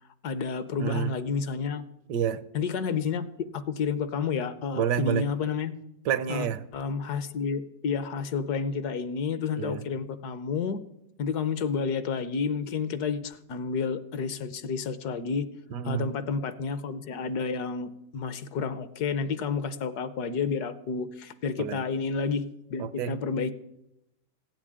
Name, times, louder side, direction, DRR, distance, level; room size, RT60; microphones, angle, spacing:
voice 1, 0.2-1.8 2.5-5.7 6.3-6.5 6.7-10.8 11.2-15.5 15.8-23.5, left 5 dB, 65° left, 13 dB, 1.3 m, -30 dB
voice 2, 0.8-1.1 2.1-2.4 4.7-5.3 6.0-6.7 9.6-9.8 15.7-16.1 21.6-21.8 22.8-23.2, right 9 dB, 75° right, 15 dB, 1.3 m, -28 dB
16.0 x 7.4 x 9.9 m, 0.86 s
omnidirectional pair, 1.9 m